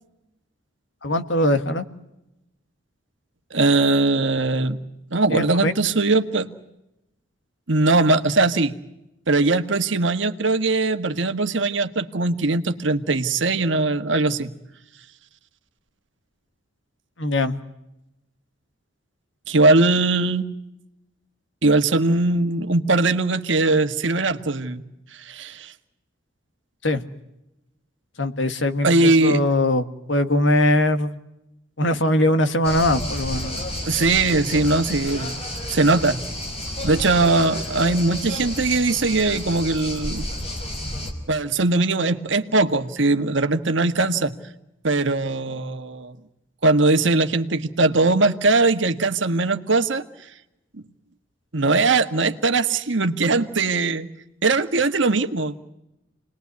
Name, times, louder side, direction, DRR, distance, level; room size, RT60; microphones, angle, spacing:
voice 1, 1.0-1.8 5.3-5.7 17.2-17.6 26.8-27.0 28.2-31.2 31.8-33.6, left 1 dB, 65° left, 9 dB, 1.7 m, -21 dB
voice 2, 3.5-4.8 5.1-6.5 7.7-8.7 9.3-14.5 19.5-20.5 21.6-24.8 25.2-25.7 28.8-29.4 33.8-35.4 35.7-36.2 36.8-40.3 41.3-44.3 44.8-46.1 46.6-50.0 51.5-54.1 54.4-55.5, right 3 dB, 65° right, 8 dB, 1.6 m, -20 dB
sound 1, 32.6-41.1, left 1 dB, 30° left, 5.1 m, -31 dB
29.5 x 21.0 x 9.6 m, 0.91 s
head